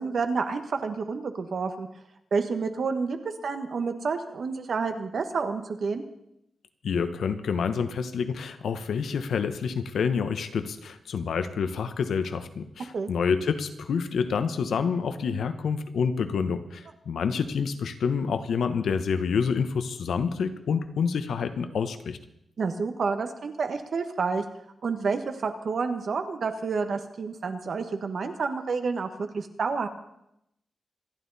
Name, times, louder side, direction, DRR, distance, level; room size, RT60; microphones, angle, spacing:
voice 1, 0.0-1.9 2.3-6.0 12.9-13.1 22.6-24.4 24.8-29.9, right 4 dB, 55° right, 7 dB, 1.5 m, -29 dB
voice 2, 6.8-22.2, left 6 dB, 80° left, 10 dB, 1.1 m, -28 dB
26.5 x 11.5 x 4.2 m, 0.80 s
wide cardioid pair, 165°, 0 cm